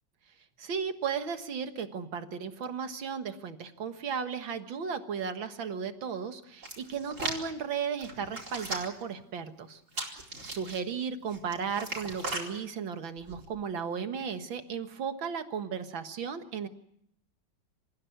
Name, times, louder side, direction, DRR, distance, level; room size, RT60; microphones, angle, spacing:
voice 1, 0.6-9.8 10.1-16.7, right 6 dB, 80° right, 8 dB, 2.3 m, -35 dB
Hands, 6.6-7.4 8.0-9.0 9.9-10.8 11.3-12.5 13.2-13.4, right 2 dB, 40° right, 4.6 m, -37 dB
27.0 x 15.5 x 9.4 m, 0.74 s
omnidirectional pair, 2.1 m